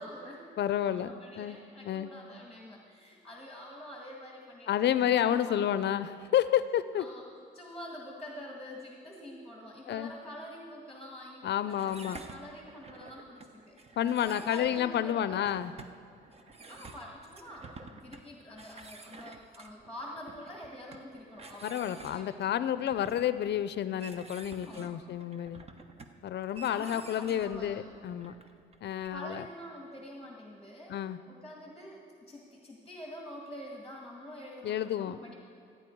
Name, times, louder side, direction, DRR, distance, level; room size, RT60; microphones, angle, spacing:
voice 1, 0.0-0.4 0.8-4.9 5.3-5.6 6.9-13.8 14.2-15.4 16.7-23.3 24.6-25.3 26.7-27.9 29.1-31.0 31.3-35.3, left 1 dB, ahead, -1 dB, 1.7 m, -46 dB
voice 2, 0.6-1.6 1.8-2.1 4.7-7.1 9.9-10.1 11.4-12.2 14.0-15.7 21.6-25.6 26.2-28.3 28.8-29.4 30.9-31.2 34.6-35.2, left 10 dB, 60° left, 14 dB, 0.5 m, -30 dB
sound 1, 11.7-29.1, right 3 dB, 30° right, 0.9 m, -51 dB
14.0 x 9.3 x 4.6 m, 2.6 s
cardioid pair, 90°, 20 cm